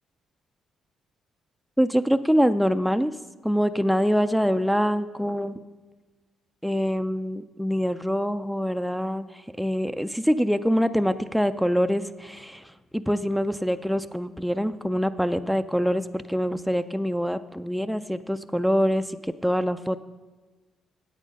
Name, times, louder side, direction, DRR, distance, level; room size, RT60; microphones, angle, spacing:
voice 1, 1.8-3.1 3.4-5.6 6.6-20.0, equal, ahead, 9 dB, 0.3 m, -25 dB
8.4 x 8.2 x 5.3 m, 1.3 s
cardioid pair, 90°, 0 cm